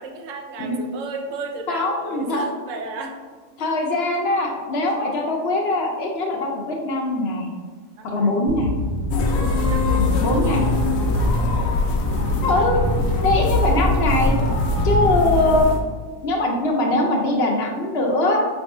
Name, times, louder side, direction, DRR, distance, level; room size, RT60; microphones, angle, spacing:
voice 1, 0.0-3.7 8.0-8.4 9.5-11.4 12.5-12.9, right 3 dB, 80° right, 2 dB, 1.0 m, -35 dB
voice 2, 1.7-2.4 3.6-7.5 8.0-8.7 10.0-10.7 12.4-12.8 13.2-14.3 14.8-15.7 16.2-18.5, left 2 dB, 60° left, 1 dB, 0.7 m, -22 dB
sound 1, 8.5-15.2, left 2 dB, 50° right, 1.3 m, -24 dB
sound 2, 9.1-15.8, left 2 dB, 90° left, 1.0 m, -23 dB
4.7 x 3.5 x 2.5 m, 1.5 s
omnidirectional pair, 1.3 m